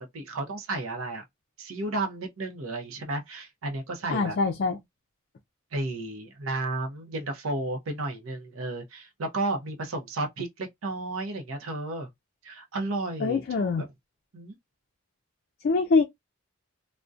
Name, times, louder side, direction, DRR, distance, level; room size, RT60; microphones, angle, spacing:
voice 1, 0.1-1.2 1.6-4.4 5.7-12.1 12.4-13.9 14.3-14.6, right 2 dB, 90° right, 0.6 m, -33 dB
voice 2, 4.1-4.8 13.2-13.8 15.6-16.0, left 4 dB, 50° left, 0.4 m, -24 dB
2.6 x 2.1 x 2.3 m
head